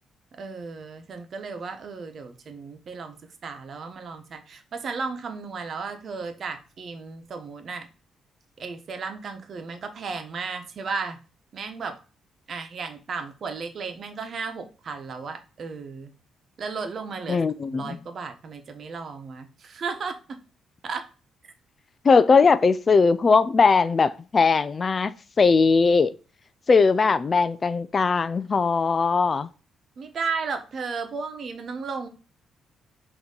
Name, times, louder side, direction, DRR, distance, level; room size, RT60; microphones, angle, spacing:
voice 1, 0.3-7.9 8.6-11.2 11.5-12.0 12.5-16.1 16.6-17.4 17.7-20.4 20.8-21.0 30.0-32.1, right 5 dB, 50° right, 1.1 m, -34 dB
voice 2, 17.3-18.0 22.0-25.1 25.4-26.1 26.7-29.5, left 4 dB, 35° left, 0.4 m, -19 dB
6.4 x 3.0 x 5.4 m
cardioid pair, 90°, 0 cm